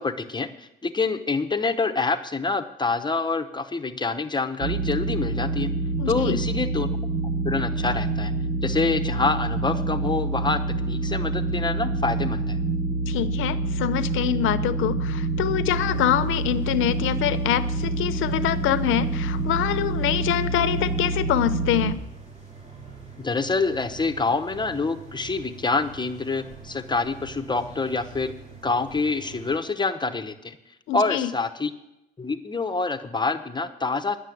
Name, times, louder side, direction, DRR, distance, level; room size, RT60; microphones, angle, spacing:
voice 1, 0.0-5.7 6.1-7.0 7.2-8.3 8.6-12.6 23.2-28.3 28.6-30.6 30.9-31.7 32.2-34.2, left 4 dB, 20° left, 8 dB, 0.9 m, -26 dB
sound 1, 4.6-21.9, right 3 dB, 65° right, 1.1 m, -27 dB
voice 2, 6.0-6.4 13.1-22.0 30.9-31.3, left 12 dB, 90° left, 12 dB, 0.8 m, -25 dB
sound 2, 15.7-29.5, right 5 dB, 35° right, 3.9 m, -44 dB
11.0 x 6.8 x 9.2 m, 0.87 s
cardioid pair, 90°, 20 cm